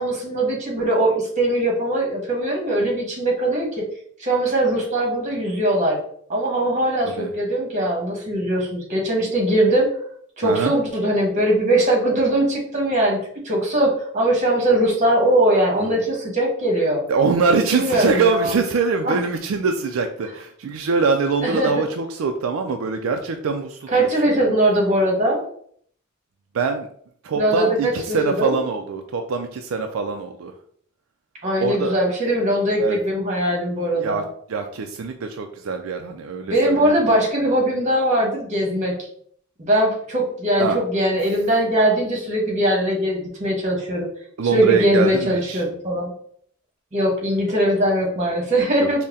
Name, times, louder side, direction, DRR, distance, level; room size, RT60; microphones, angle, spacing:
voice 1, 0.0-3.7 4.2-6.0 6.3-9.9 10.4-13.2 13.4-17.0 17.7-18.5 19.0-19.2 21.4-21.7 23.9-25.4 27.3-28.5 31.4-34.2 36.5-39.0 39.6-44.1 44.5-46.1 46.9-49.0, right 1 dB, 35° right, -1 dB, 1.2 m, -20 dB
voice 2, 10.4-10.7 15.8-15.9 17.1-24.4 26.5-26.9 27.2-30.5 31.6-32.0 32.8-33.0 34.0-34.2 34.5-37.0 40.6-40.8 44.4-45.6 48.8-49.0, right 4 dB, 80° right, 5 dB, 0.4 m, -23 dB
4.1 x 2.1 x 3.6 m, 0.62 s
head